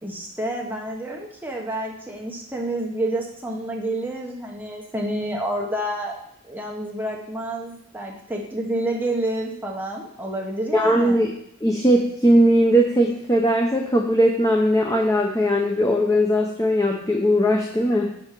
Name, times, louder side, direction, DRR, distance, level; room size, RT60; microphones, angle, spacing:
voice 1, 0.0-6.2 6.5-11.3, right 1 dB, 10° right, -1 dB, 1.0 m, -29 dB
voice 2, 10.7-11.3 11.6-18.2, equal, 15° left, 1 dB, 0.6 m, -19 dB
6.0 x 5.3 x 5.7 m, 0.73 s
head